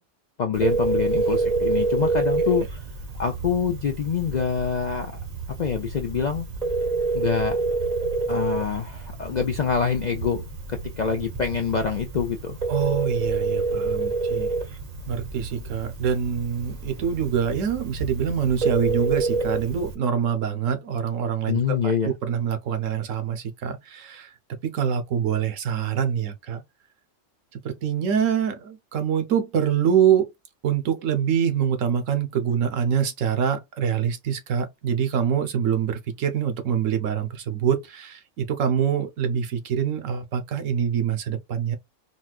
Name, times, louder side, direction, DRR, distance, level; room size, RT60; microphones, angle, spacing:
voice 1, 0.4-2.8 3.2-5.1 5.6-6.5 7.1-7.6 8.3-12.6 21.5-22.1, left 6 dB, 60° left, 0.4 m, -26 dB
Telephone, 0.5-19.9, right 3 dB, 35° right, 0.8 m, -28 dB
voice 2, 12.7-14.5 15.1-21.9 22.2-24.3 24.6-26.6 27.5-30.3 30.6-41.8, right 8 dB, 75° right, 1.1 m, -25 dB
4.1 x 2.2 x 2.3 m
omnidirectional pair, 1.3 m